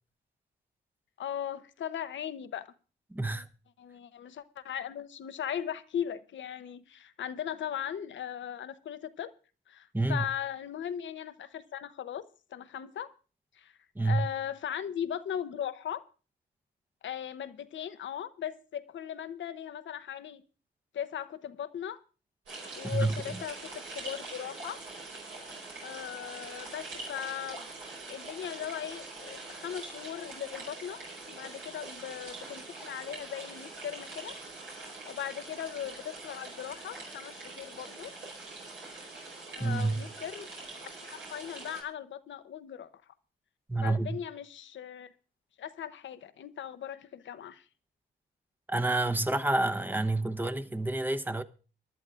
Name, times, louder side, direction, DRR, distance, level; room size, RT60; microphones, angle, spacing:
voice 1, 1.2-2.7 3.3-3.4 3.8-9.3 9.7-12.2 12.5-13.1 13.5-13.7 14.0-16.0 17.0-20.4 20.9-22.0 22.7-24.8 25.8-27.6 28.1-34.3 35.1-38.1 39.5-40.5 40.8-42.9 43.8-45.1 45.6-47.7, left 9 dB, 70° left, 0.8 m, -38 dB
voice 2, 3.1-3.5 9.9-10.3 13.9-14.3 22.8-23.2 39.6-40.0 43.7-44.2 48.7-51.4, right 2 dB, 10° right, 0.9 m, -28 dB
sound 1, 22.5-41.8, right 3 dB, 85° right, 4.6 m, -44 dB
24.0 x 11.0 x 2.5 m
cardioid pair, 60°, 20 cm